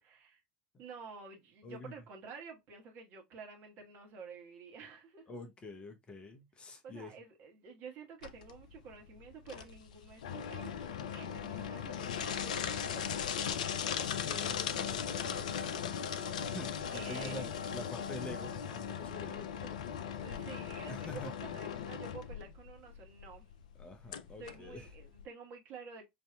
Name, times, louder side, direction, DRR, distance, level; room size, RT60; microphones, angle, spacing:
voice 1, 0.0-0.4 0.8-5.3 6.7-12.6 12.8-13.6 16.9-17.6 20.1-23.5 24.4-26.1, right 5 dB, 45° right, 1.2 m, -50 dB
voice 2, 1.6-1.9 5.3-7.1 14.0-16.1 16.5-17.4 17.7-19.8 20.9-21.6 23.8-24.9, left 2 dB, 20° left, 0.6 m, -47 dB
sound 1, 8.2-25.3, left 8 dB, 65° left, 0.4 m, -38 dB
5.2 x 2.7 x 2.2 m
figure-of-eight pair, 75°, 4 cm